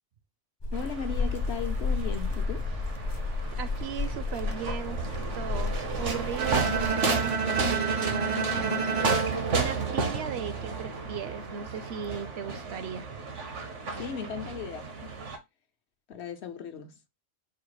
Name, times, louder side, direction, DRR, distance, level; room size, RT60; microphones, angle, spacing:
sound 1, 0.6-6.9, left 3 dB, 30° left, 0.5 m, -32 dB
voice 1, 0.7-2.7 14.0-15.2 16.1-17.0, left 7 dB, 70° left, 1.0 m, -37 dB
sound 2, 0.7-15.4, right 4 dB, 90° right, 1.4 m, -33 dB
voice 2, 3.6-5.0 5.3-8.9 9.5-13.1, right 8 dB, 70° right, 0.8 m, -37 dB
Bowed string instrument, 6.4-10.5, right 5 dB, 45° right, 0.4 m, -30 dB
4.8 x 2.0 x 4.6 m
omnidirectional pair, 1.2 m